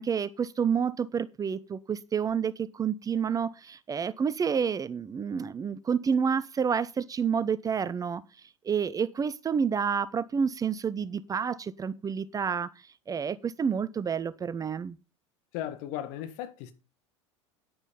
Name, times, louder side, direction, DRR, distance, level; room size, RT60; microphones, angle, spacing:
voice 1, 0.0-8.2 8.6-12.7 13.1-15.0, right 6 dB, 20° right, 0.6 m, -29 dB
voice 2, 15.5-16.7, left 11 dB, 55° left, 1.6 m, -36 dB
9.8 x 9.6 x 5.3 m
figure-of-eight pair, 75°, 16 cm